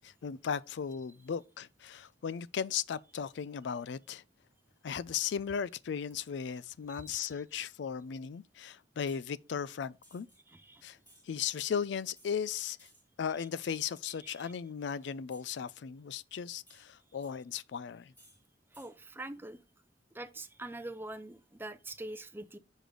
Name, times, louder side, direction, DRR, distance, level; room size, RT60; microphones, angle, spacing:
voice 1, 0.0-4.2 4.8-10.3 10.8-11.0 11.2-12.9 13.2-18.1, left 7 dB, 70° left, 0.4 m, -36 dB
voice 2, 6.9-7.2 10.5-10.8 14.2-14.5 18.7-19.6 20.1-22.6, right 2 dB, 10° right, 0.5 m, -44 dB
sound 1, 9.1-9.3 10.0-10.4 11.0-11.3 12.2-12.4 12.8-13.0 13.6-14.0 15.3-15.7 16.7-17.3 18.1-18.4 18.7-18.9, equal, 10° left, 3.1 m, -61 dB
6.3 x 5.0 x 3.8 m
head